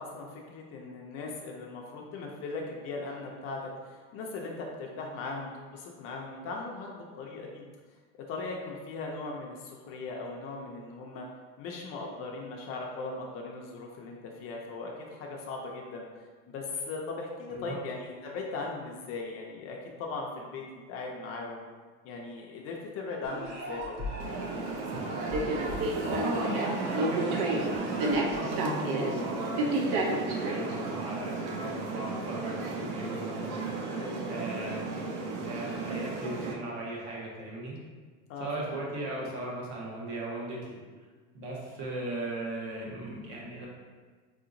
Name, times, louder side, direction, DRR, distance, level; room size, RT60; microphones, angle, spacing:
voice 1, 0.0-7.6 8.3-11.3 11.6-16.0 16.5-20.6 20.9-21.6 22.0-24.1 34.0-34.3 38.3-38.7, left 3 dB, 40° left, 0 dB, 0.4 m, -39 dB
sound 1, 23.2-28.6, right 1 dB, 30° right, 0.6 m, -39 dB
sound 2, 24.2-36.5, right 2 dB, 70° right, 0.6 m, -32 dB
voice 2, 26.0-34.0 34.3-37.8 38.4-40.8 41.3-43.7, right 1 dB, 55° right, -3 dB, 1.0 m, -37 dB
4.8 x 2.8 x 2.5 m, 1.5 s
cardioid pair, 170°, 35 cm